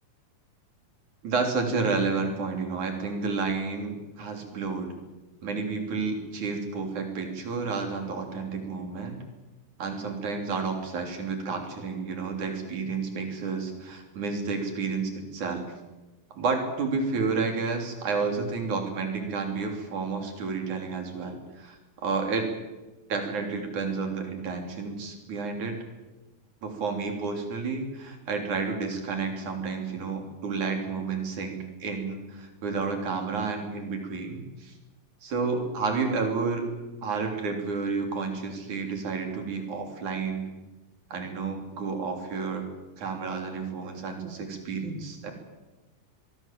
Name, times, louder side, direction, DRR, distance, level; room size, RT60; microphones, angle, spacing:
voice 1, 1.2-4.9 5.4-9.2 9.8-15.7 16.4-22.5 23.1-25.8 26.6-34.7 35.2-36.7 37.0-40.5 41.1-42.7 43.0-45.3, right 4 dB, 60° right, 4 dB, 4.7 m, -30 dB
23.0 x 22.5 x 7.5 m, 1.1 s
omnidirectional pair, 4.0 m